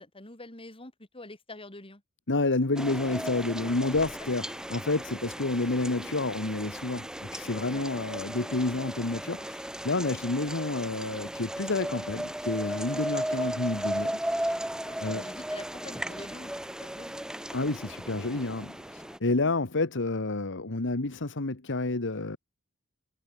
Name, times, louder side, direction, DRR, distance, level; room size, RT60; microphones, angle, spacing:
voice 1, 0.0-2.0 7.7-7.8 10.0-10.3 12.9-13.0 14.8-16.5 16.8-17.2 19.0-19.2, left 2 dB, 25° left, 4.2 m, -46 dB
voice 2, 2.3-14.2 15.0-15.2 17.5-22.4, left 2 dB, 60° left, 1.5 m, -29 dB
sound 1, 2.8-19.2, right 1 dB, 5° right, 0.7 m, -36 dB
head